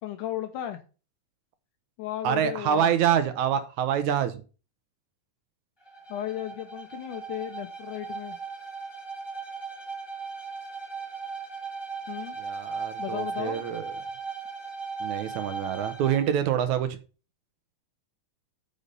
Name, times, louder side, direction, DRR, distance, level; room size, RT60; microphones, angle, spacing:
voice 1, 0.0-0.8 2.0-2.9 6.1-8.4 12.1-12.4 13.0-13.6, left 12 dB, 75° left, 2.1 m, -35 dB
voice 2, 2.2-4.4 12.4-13.9 15.0-17.0, right 9 dB, 75° right, 1.9 m, -26 dB
Bowed string instrument, 5.8-16.3, right 5 dB, 15° left, 0.9 m, -37 dB
8.7 x 5.4 x 5.5 m
omnidirectional pair, 4.0 m